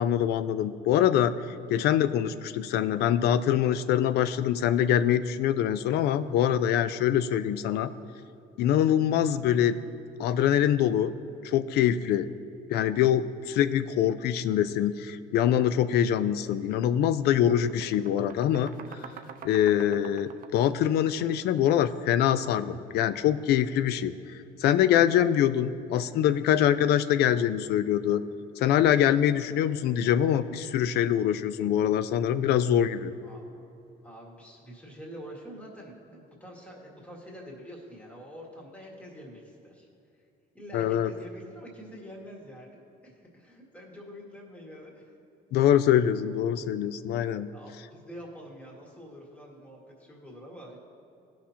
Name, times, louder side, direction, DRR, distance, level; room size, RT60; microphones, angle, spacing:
voice 1, 0.0-1.3 1.7-7.9 8.6-9.8 10.2-11.1 11.4-12.3 12.7-18.7 19.4-24.1 24.6-28.2 28.6-33.1 40.7-41.1 45.5-47.5, left 10 dB, 75° left, 14 dB, 0.4 m, -24 dB
sound 1, 16.5-16.7 17.0-22.0, right 8 dB, 55° right, 0.5 m, -47 dB
voice 2, 34.0-39.9 40.1-40.2 40.5-45.1 47.5-50.8, equal, 10° left, -2 dB, 1.8 m, -46 dB
17.0 x 5.9 x 2.8 m, 2.7 s
cardioid pair, 110°, 17 cm